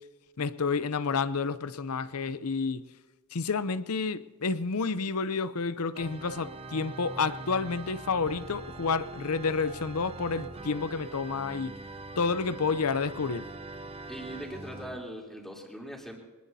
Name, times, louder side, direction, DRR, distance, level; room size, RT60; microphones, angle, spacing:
voice 1, 0.4-2.8 3.3-11.7 12.2-13.5, left 4 dB, 75° left, 0.7 m, -30 dB
Organ, 5.9-15.1, right 3 dB, 25° right, 0.7 m, -43 dB
voice 2, 14.1-16.2, equal, ahead, 3.3 m, -41 dB
23.5 x 20.5 x 2.8 m
head